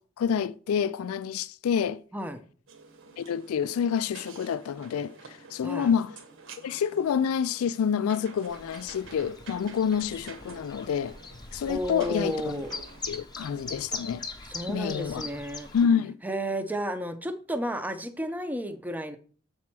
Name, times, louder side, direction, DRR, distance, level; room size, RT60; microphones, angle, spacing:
voice 1, 0.2-2.0 3.2-6.1 6.6-11.2 11.5-12.6 13.1-14.2 14.7-15.3 15.7-16.2, left 7 dB, 80° left, 0.3 m, -28 dB
sound 1, 2.7-13.2, right 4 dB, 65° right, 1.2 m, -49 dB
Chirp tweet, 8.5-15.9, left 4 dB, 20° left, 0.9 m, -41 dB
voice 2, 11.7-12.7 14.5-15.7 16.2-19.2, equal, 10° right, 0.7 m, -32 dB
7.3 x 4.3 x 6.0 m
head